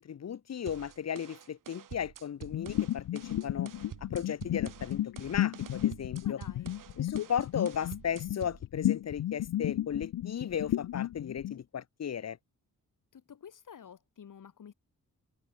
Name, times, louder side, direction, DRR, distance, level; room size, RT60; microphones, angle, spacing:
voice 1, 0.0-3.7 4.1-6.4 7.0-12.4, left 8 dB, 50° left, 0.9 m, -36 dB
sound 1, 0.7-8.6, right 10 dB, 65° right, 1.1 m, -48 dB
sound 2, 2.4-11.6, left 13 dB, 80° left, 0.6 m, -33 dB
voice 2, 6.2-6.8 13.1-14.7, left 8 dB, 65° left, 3.1 m, -50 dB
wide cardioid pair, 140°, 34 cm